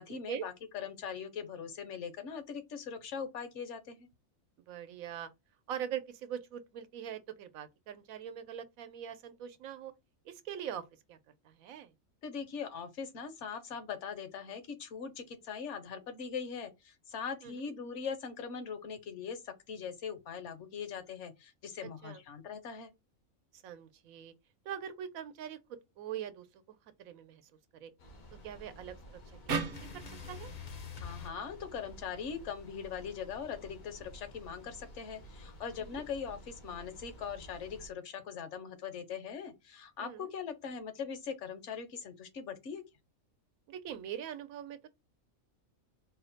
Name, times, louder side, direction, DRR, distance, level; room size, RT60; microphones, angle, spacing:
voice 1, 0.0-4.1 12.2-22.9 31.0-42.8, left 6 dB, 65° left, 1.0 m, -41 dB
voice 2, 4.7-5.3 5.7-9.9 10.2-11.2 11.4-11.9 17.4-17.7 22.0-22.2 23.6-24.3 24.6-25.6 26.0-26.6 27.0-27.4 27.7-27.9 28.4-30.5 35.8-36.0 40.0-40.3 43.7-44.9, right 9 dB, 90° right, 1.0 m, -42 dB
sound 1, 28.0-37.9, equal, 85° left, 1.5 m, -52 dB
sound 2, 29.5-32.7, right 5 dB, 55° right, 0.7 m, -40 dB
sound 3, 29.7-32.2 33.6-34.9, left 7 dB, 50° left, 0.5 m, -48 dB
4.2 x 2.1 x 3.9 m
omnidirectional pair, 1.4 m